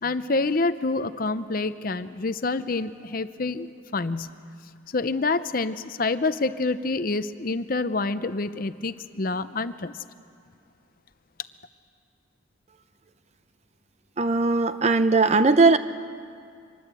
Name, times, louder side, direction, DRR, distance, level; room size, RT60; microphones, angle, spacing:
voice 1, 0.0-4.3 4.9-9.9, left 3 dB, 45° left, 12 dB, 0.6 m, -27 dB
voice 2, 14.2-15.8, right 3 dB, 35° right, 11 dB, 0.6 m, -19 dB
24.5 x 20.5 x 8.2 m, 2.3 s
head